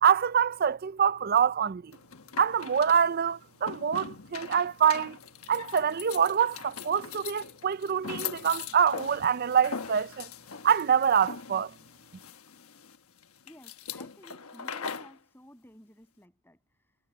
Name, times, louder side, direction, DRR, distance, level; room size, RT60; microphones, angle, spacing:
voice 1, 0.0-1.9 2.4-5.2 5.5-10.3 10.6-11.7, right 7 dB, 45° right, 0.4 m, -25 dB
sound 1, 1.9-15.2, left 6 dB, 80° left, 1.2 m, -41 dB
voice 2, 13.4-17.0, equal, 10° left, 7.5 m, -54 dB
head